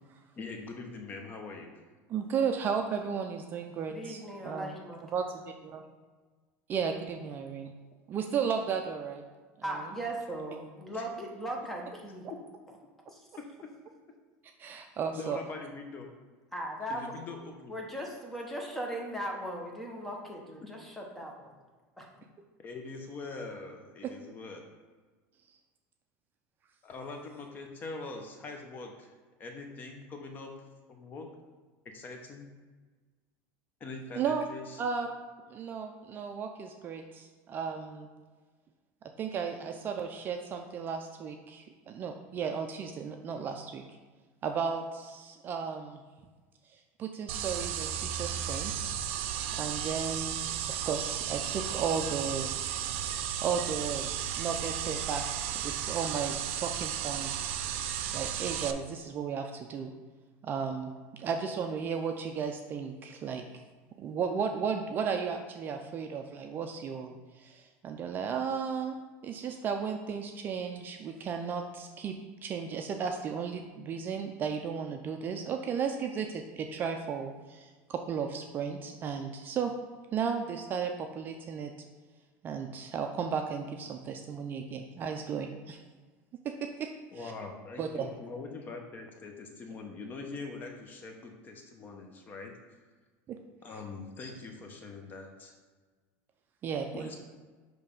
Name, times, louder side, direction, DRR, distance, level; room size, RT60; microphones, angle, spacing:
voice 1, 0.4-1.8 10.9-11.3 13.4-13.7 15.1-16.1 16.9-17.7 20.6-20.7 22.6-24.7 26.8-29.1 29.4-30.5 30.9-31.3 31.9-32.5 33.8-34.8 87.1-92.5 93.6-95.5 96.9-97.2, left 3 dB, 25° left, 3 dB, 0.7 m, -43 dB
voice 2, 2.1-4.7 5.1-5.8 6.7-7.7 8.1-9.2 9.6-9.9 14.6-15.4 34.2-34.4 34.8-35.1 35.5-38.1 39.2-43.8 44.4-46.0 46.7-49.0 49.5-50.4 50.7-52.5 53.1-54.1 54.4-57.5 58.1-59.9 60.4-63.4 64.0-69.0 69.2-72.1 72.4-79.7 80.1-81.7 82.4-85.8 86.4-86.9 87.1-87.3 87.8-88.1 93.3-93.4 96.6-97.1, right 6 dB, 30° right, 4 dB, 0.4 m, -34 dB
voice 3, 3.9-5.0 9.6-12.2 13.1-13.2 16.5-17.1 17.7-21.5 22.0-22.1, right 1 dB, 5° left, 0 dB, 1.0 m, -38 dB
sound 1, 47.3-58.7, right 9 dB, 80° right, 0.5 m, -34 dB
6.8 x 3.2 x 5.3 m, 1.4 s
cardioid pair, 155°, 7 cm